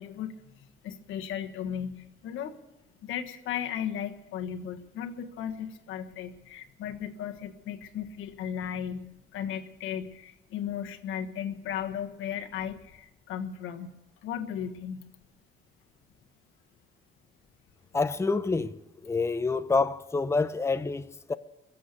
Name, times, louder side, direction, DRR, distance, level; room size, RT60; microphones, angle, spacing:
voice 1, 0.0-2.6 3.0-13.9 14.2-15.0, left 9 dB, 90° left, 1.5 m, -36 dB
voice 2, 17.9-18.7 19.0-21.3, left 4 dB, 15° left, 0.7 m, -27 dB
22.5 x 7.7 x 8.2 m
cardioid pair, 90°, 20 cm